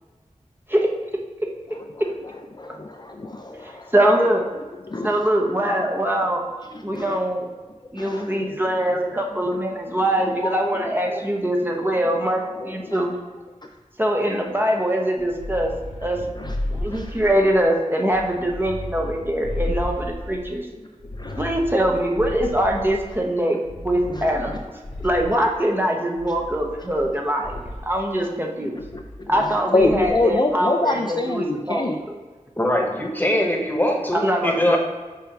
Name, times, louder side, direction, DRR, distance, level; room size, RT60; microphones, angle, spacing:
voice 1, 2.2-3.9 4.9-5.3 6.7-7.2 8.0-11.2 11.8-11.9 12.1-12.2 12.5-13.0 16.3-16.5 16.9-17.1 21.2-21.4 24.1-24.6 28.6-32.0, left 2 dB, 35° left, 2 dB, 0.4 m, -27 dB
voice 2, 3.9-4.4 5.0-6.5 6.8-7.5 7.9-13.1 14.0-15.7 16.0-16.2 16.7-20.7 21.4-24.6 25.0-28.7 29.3-31.9 34.1-34.8, right 1 dB, 15° right, 0 dB, 0.8 m, -23 dB
sound 1, 15.2-17.6 18.1-20.5 21.0-23.2 23.6-25.5 26.2-27.1 27.4-27.9 28.8-29.5 29.8-30.3, left 1 dB, 65° left, 1.3 m, -33 dB
voice 3, 32.6-34.8, left 1 dB, 15° left, 1 dB, 1.1 m, -22 dB
6.8 x 2.7 x 5.1 m, 1.3 s
wide cardioid pair, 55°, 13 cm